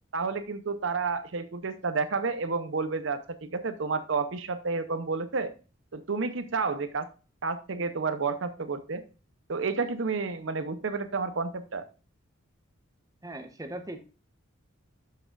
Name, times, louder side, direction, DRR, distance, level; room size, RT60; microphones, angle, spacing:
voice 1, 0.1-5.5 5.9-7.1 7.4-9.0 9.5-11.9, right 4 dB, 70° right, 11 dB, 0.7 m, -30 dB
voice 2, 13.2-14.0, right 1 dB, 15° right, 6 dB, 0.9 m, -39 dB
12.0 x 6.2 x 2.4 m, 0.34 s
head